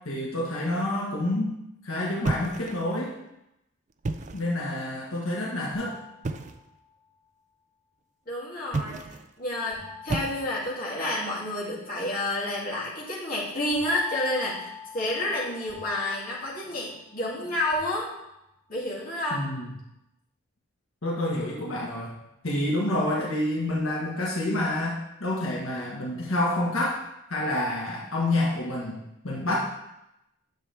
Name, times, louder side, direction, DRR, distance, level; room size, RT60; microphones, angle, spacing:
voice 1, 0.0-1.5 1.8-3.1 4.3-6.0 19.3-19.7 21.0-22.1 22.4-27.0 27.3-29.0 29.2-29.6, left 1 dB, 80° left, -4 dB, 1.5 m, -28 dB
sound 1, 2.2-3.1 3.9-4.6 6.2-6.7 8.7-9.3 10.1-10.8, right 3 dB, 35° right, 0.4 m, -32 dB
sound 2, 5.7-6.9 9.7-11.3 13.7-17.3 17.7-18.6, left 6 dB, 65° left, 3.0 m, -45 dB
voice 2, 8.3-9.0 9.4-18.1 18.7-19.4, left 1 dB, 45° left, -6 dB, 2.6 m, -30 dB
10.0 x 6.9 x 3.4 m, 0.86 s
head